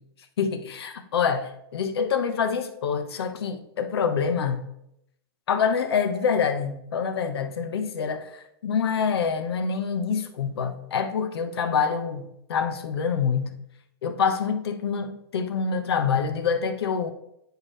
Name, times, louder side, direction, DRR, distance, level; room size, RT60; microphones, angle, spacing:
voice 1, 0.4-4.6 5.5-13.5 14.0-17.1, left 6 dB, 75° left, 9 dB, 1.0 m, -26 dB
9.4 x 4.7 x 3.3 m, 0.77 s
hypercardioid pair, 160°, 13 cm